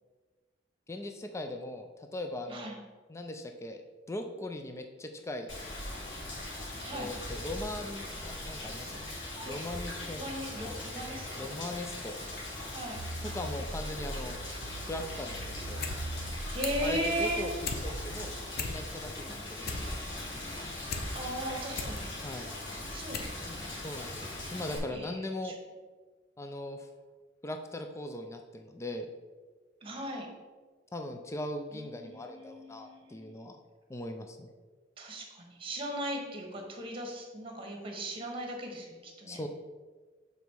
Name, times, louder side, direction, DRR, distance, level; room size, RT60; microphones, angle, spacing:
voice 1, 0.9-2.7 3.1-3.8 4.1-5.5 6.9-9.1 9.4-10.2 11.4-12.2 13.3-14.4 14.8-15.8 16.8-19.9 22.2-22.5 23.8-25.5 26.4-26.9 27.4-29.1 30.9-33.6 33.9-34.5 39.3-39.5, left 1 dB, 15° left, 5 dB, 0.4 m, -39 dB
Rain, 5.5-24.8, left 1 dB, 75° left, 2.0 m, -40 dB
voice 2, 6.8-7.1 9.4-9.6 10.1-11.5 12.7-13.0 16.5-17.4 19.2-19.4 21.1-22.2 22.9-23.7 24.9-25.5 29.8-30.3 31.7-33.3 35.0-39.4, right 1 dB, 30° right, 1 dB, 1.3 m, -37 dB
sound 1, 13.0-18.4, right 1 dB, 50° right, 0.6 m, -41 dB
sound 2, 15.8-16.0 16.3-16.9 17.3-17.8 18.2-18.3 18.5-19.1 19.4-21.1 21.5-22.0 22.5-22.6 23.1-23.4 23.7-23.8, left 4 dB, 55° left, 0.8 m, -37 dB
7.1 x 4.0 x 4.6 m, 1.4 s
head